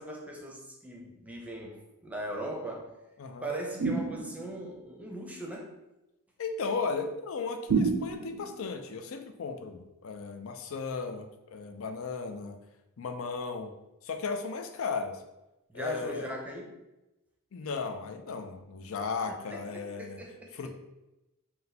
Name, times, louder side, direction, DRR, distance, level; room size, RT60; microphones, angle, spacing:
voice 1, 0.0-2.9 3.4-5.7 15.7-16.8 19.5-20.5, right 1 dB, 5° right, 0 dB, 0.6 m, -39 dB
voice 2, 3.2-3.5 6.4-12.6 13.0-13.7 14.0-15.2 15.7-16.3 17.5-20.2 20.5-20.7, left 4 dB, 70° left, 7 dB, 0.5 m, -35 dB
sound 1, 3.8-4.7 7.7-8.6, right 4 dB, 80° right, 0.4 m, -29 dB
4.0 x 2.2 x 4.0 m, 0.97 s
head